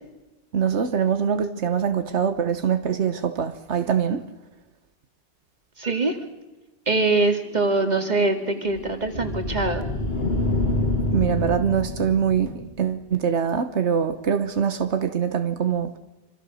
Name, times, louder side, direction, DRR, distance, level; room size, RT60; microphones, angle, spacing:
voice 1, 0.5-4.3 10.7-10.8 11.1-16.0, right 7 dB, 90° right, 1.4 m, -23 dB
voice 2, 5.8-6.2 6.9-9.8, right 3 dB, 40° right, 2.5 m, -23 dB
sound 1, 7.5-12.9, left 2 dB, 65° left, 2.4 m, -28 dB
26.0 x 25.5 x 6.4 m
omnidirectional pair, 1.1 m